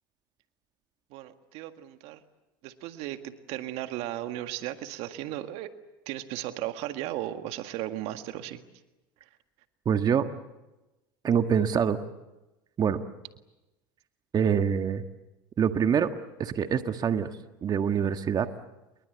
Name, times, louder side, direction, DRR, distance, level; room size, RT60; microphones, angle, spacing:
voice 1, 1.1-2.2 2.6-5.7 6.1-8.6, right 14 dB, 65° right, 8 dB, 1.8 m, -36 dB
voice 2, 9.8-10.3 11.2-12.0 12.8-13.0 14.3-15.0 15.6-16.1 16.4-17.3 17.6-18.5, right 7 dB, 35° right, 8 dB, 1.6 m, -25 dB
29.0 x 22.5 x 8.1 m, 1.0 s
hypercardioid pair, 85°, 11 cm